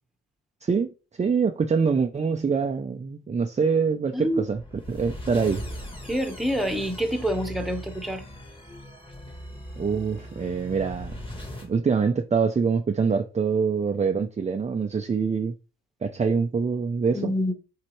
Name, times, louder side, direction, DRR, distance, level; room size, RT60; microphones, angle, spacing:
voice 1, 0.6-4.6 4.9-5.6 9.8-11.2 11.6-15.5 16.0-17.3, right 5 dB, 25° right, 0.6 m, -25 dB
sound 1, 4.3-11.7, equal, 15° left, 2.0 m, -39 dB
voice 2, 6.0-8.2 17.1-17.5, equal, ahead, 1.2 m, -27 dB
7.4 x 4.1 x 3.2 m
cardioid pair, 90°, 30 cm